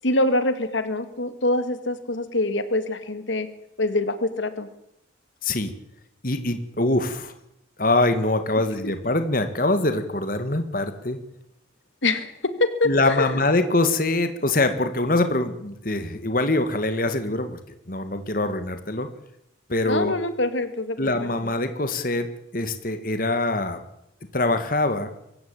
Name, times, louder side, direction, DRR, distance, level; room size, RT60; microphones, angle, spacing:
voice 1, 0.0-3.5 3.8-4.7 12.0-12.3 12.6-13.4 19.9-21.1, left 2 dB, 90° left, 10 dB, 2.2 m, -24 dB
voice 2, 5.4-5.7 6.2-7.3 7.8-11.2 12.8-17.6 17.9-19.1 19.7-20.2 21.0-22.3 22.5-23.8 24.3-25.1, left 2 dB, 50° left, 9 dB, 1.9 m, -24 dB
24.0 x 15.0 x 8.9 m, 0.81 s
head